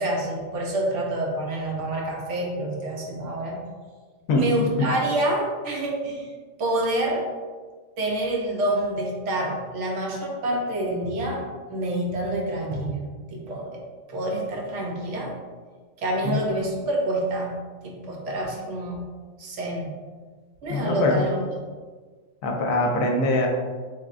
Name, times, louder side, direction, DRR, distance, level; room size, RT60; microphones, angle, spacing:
voice 1, 0.0-3.6 4.3-6.3 6.6-7.3 8.0-13.0 13.3-13.8 14.1-15.3 16.0-17.5 17.8-19.0 19.4-19.9 20.6-21.4, right 1 dB, 70° right, -1 dB, 1.0 m, -27 dB
voice 2, 20.7-21.2 22.4-23.5, left 2 dB, 80° left, 1 dB, 1.0 m, -23 dB
3.6 x 3.3 x 2.4 m, 1.5 s
omnidirectional pair, 1.4 m